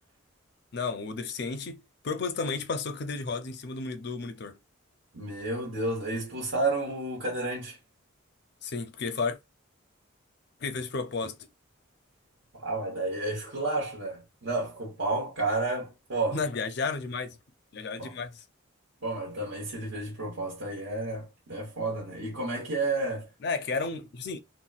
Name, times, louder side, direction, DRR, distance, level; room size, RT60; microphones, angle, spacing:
voice 1, 0.7-4.6 8.6-9.4 10.6-11.4 16.3-17.4 17.7-18.4 23.4-24.4, left 4 dB, 55° left, 0.5 m, -32 dB
voice 2, 5.1-7.8 12.5-16.4 18.0-18.1 19.0-23.3, right 2 dB, 70° right, 1.1 m, -31 dB
4.0 x 2.1 x 2.3 m
head